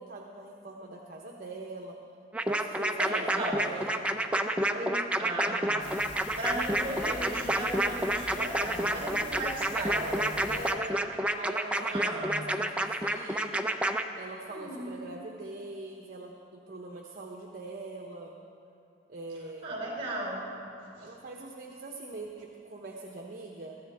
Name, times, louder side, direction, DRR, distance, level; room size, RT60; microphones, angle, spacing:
voice 1, 0.0-2.0 2.5-4.1 10.5-11.0 11.3-13.8 14.2-18.3 19.1-19.7 21.0-23.8, right 2 dB, 50° right, 0 dB, 1.0 m, -42 dB
sound 1, 2.3-14.0, right 1 dB, 5° right, 0.5 m, -29 dB
voice 2, 3.0-3.6 4.7-6.0 6.4-10.5 11.9-12.6 14.5-15.0 19.6-20.5 21.0-21.1, right 1 dB, 30° right, -4 dB, 4.6 m, -36 dB
sound 2, 5.8-10.7, left 2 dB, 65° left, 1.5 m, -45 dB
22.0 x 14.0 x 3.6 m, 2.5 s
head